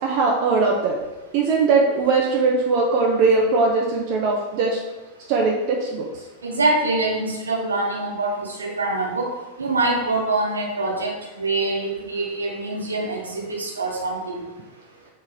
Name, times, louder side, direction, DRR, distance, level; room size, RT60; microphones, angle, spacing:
voice 1, 0.0-1.0 1.3-4.8 5.3-6.2, right 4 dB, 45° right, -1 dB, 0.3 m, -20 dB
voice 2, 6.4-9.3 9.6-11.1 11.4-14.2, right 2 dB, 75° right, -3 dB, 0.7 m, -24 dB
2.8 x 2.8 x 2.3 m, 1.1 s
figure-of-eight pair, 90°, 0 cm